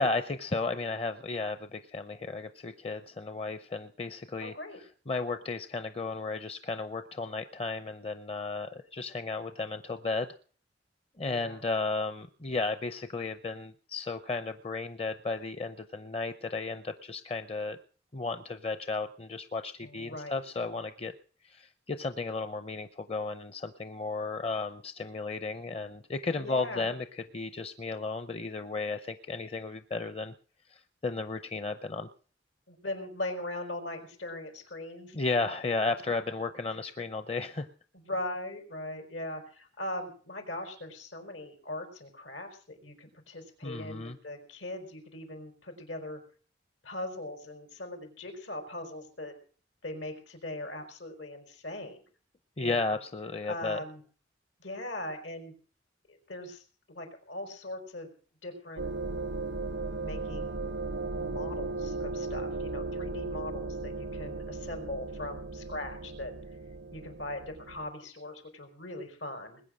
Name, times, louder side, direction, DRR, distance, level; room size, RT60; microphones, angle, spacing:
voice 1, 0.0-10.3 11.2-17.8 18.1-21.1 21.4-30.3 30.7-32.1 35.1-37.7 43.6-44.2 52.6-53.8, left 3 dB, 35° left, 10 dB, 0.7 m, -34 dB
voice 2, 4.4-4.8 11.3-11.6 19.8-20.4 26.3-26.9 32.7-35.2 37.9-46.2 46.8-49.3 49.8-52.0 52.6-53.0 53.5-54.0 54.6-55.5 56.1-58.1 58.4-58.8 60.0-60.6 61.2-66.3 66.9-69.6, left 1 dB, 90° left, 5 dB, 5.0 m, -40 dB
sound 1, 58.8-67.9, right 3 dB, 70° right, 0.7 m, -36 dB
21.0 x 9.2 x 6.4 m, 0.43 s
head